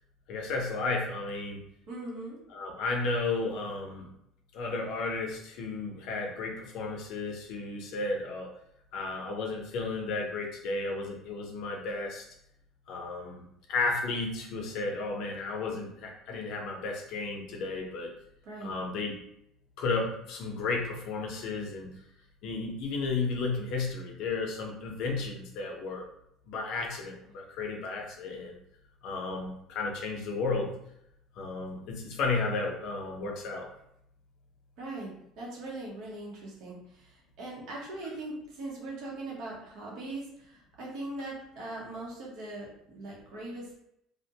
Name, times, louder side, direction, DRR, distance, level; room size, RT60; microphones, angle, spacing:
voice 1, 0.3-1.6 2.5-4.1 4.5-8.5 8.9-12.2 12.9-18.1 18.6-19.2 19.8-21.9 22.4-26.1 26.5-28.6 29.0-30.7 31.4-33.7, left 3 dB, 60° left, 1 dB, 0.6 m, -33 dB
voice 2, 1.9-2.4 18.4-18.7 34.8-43.7, right 2 dB, 60° right, -3 dB, 0.8 m, -40 dB
2.4 x 2.1 x 2.8 m, 0.76 s
cardioid pair, 145°, 0 cm